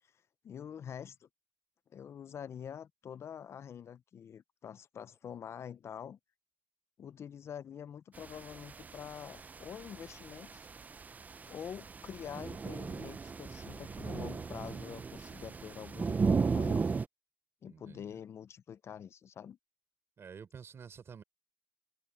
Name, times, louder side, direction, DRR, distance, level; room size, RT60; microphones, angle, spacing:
voice 1, 0.4-1.3 1.9-6.2 7.0-10.7 11.5-16.9 17.6-19.6, left 8 dB, 65° left, 0.4 m, -46 dB
sound 1, 8.1-17.1, right 5 dB, 35° right, 0.3 m, -36 dB
voice 2, 17.7-18.2 20.2-21.2, right 6 dB, 60° right, 3.7 m, -50 dB
cardioid pair, 100°, 5 cm